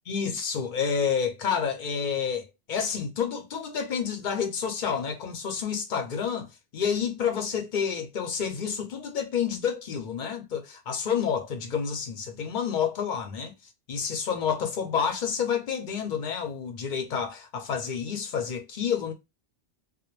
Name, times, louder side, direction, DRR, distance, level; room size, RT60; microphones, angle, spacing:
voice 1, 0.1-6.5 6.7-13.5 13.9-19.1, left 7 dB, 60° left, 0.5 m, -29 dB
2.3 x 2.1 x 2.9 m
omnidirectional pair, 1.2 m